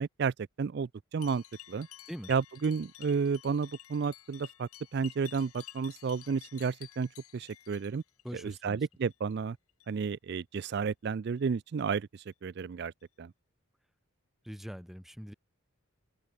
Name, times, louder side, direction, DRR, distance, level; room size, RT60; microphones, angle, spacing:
voice 1, 0.0-1.9 2.3-8.0 8.3-9.6 9.9-12.9 13.2-13.3, right 5 dB, 50° right, 0.3 m, -32 dB
sound 1, 1.2-8.6 8.9-9.3 9.7-10.0 10.5-10.7 11.4-11.5 12.2-12.3 13.0-13.1, left 14 dB, 85° left, 1.4 m, -52 dB
voice 2, 8.2-8.8 14.4-15.3, equal, ahead, 0.9 m, -42 dB
open air
head